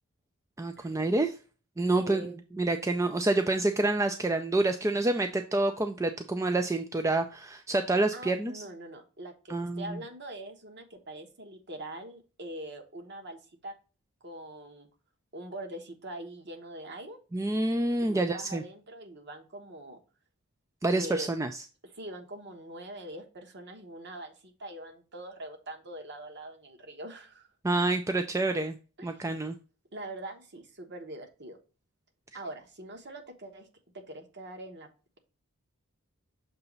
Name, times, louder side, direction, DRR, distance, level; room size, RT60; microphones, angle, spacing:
voice 1, 0.6-1.3 1.8-8.6 9.5-10.0 17.3-18.6 20.8-21.6 27.6-28.8 29.0-29.6, right 2 dB, 15° right, 6 dB, 0.3 m, -28 dB
voice 2, 1.9-2.4 8.1-13.7 14.2-14.9 15.3-17.2 18.0-20.0 20.9-21.3 21.9-27.5 29.0-29.3 29.9-31.6 32.3-33.7 33.9-34.9, right 1 dB, 50° right, 4 dB, 1.2 m, -43 dB
6.7 x 3.0 x 5.3 m, 0.34 s
head